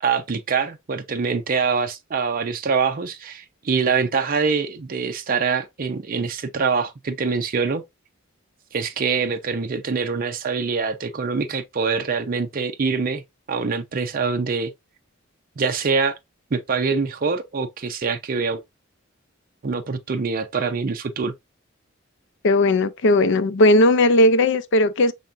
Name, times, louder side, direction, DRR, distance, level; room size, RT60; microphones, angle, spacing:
voice 1, 0.0-7.8 8.7-13.2 13.5-14.7 15.6-16.2 16.5-18.6 19.6-21.3, right 5 dB, 45° right, 0.5 m, -24 dB
voice 2, 22.4-25.1, left 1 dB, 60° left, 0.5 m, -17 dB
5.6 x 3.5 x 2.4 m
head